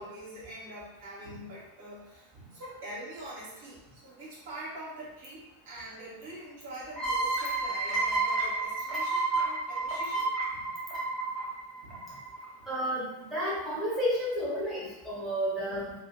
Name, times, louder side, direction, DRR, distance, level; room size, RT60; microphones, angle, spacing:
voice 1, 0.0-10.7 11.8-12.1 12.6-12.7, right 1 dB, 55° right, -7 dB, 1.0 m, -44 dB
sound 1, 7.0-12.4, right 3 dB, 25° right, 0.8 m, -31 dB
voice 2, 12.7-13.0 13.3-15.9, equal, 5° right, -9 dB, 1.0 m, -31 dB
2.4 x 2.1 x 2.6 m, 0.95 s
figure-of-eight pair, 90°, 0 cm